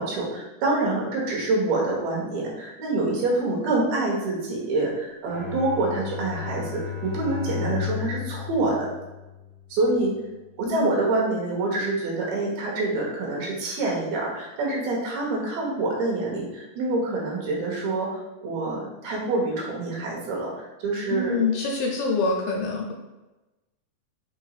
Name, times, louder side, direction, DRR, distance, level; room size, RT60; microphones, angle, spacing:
voice 1, 0.0-8.9 9.7-10.1 10.6-21.4, right 2 dB, 90° right, -3 dB, 3.0 m, -26 dB
Bowed string instrument, 5.3-9.7, left 7 dB, 65° right, 2.2 m, -33 dB
voice 2, 21.1-22.9, left 4 dB, 80° left, -1 dB, 2.0 m, -25 dB
6.3 x 2.9 x 2.4 m, 1.1 s
omnidirectional pair, 4.2 m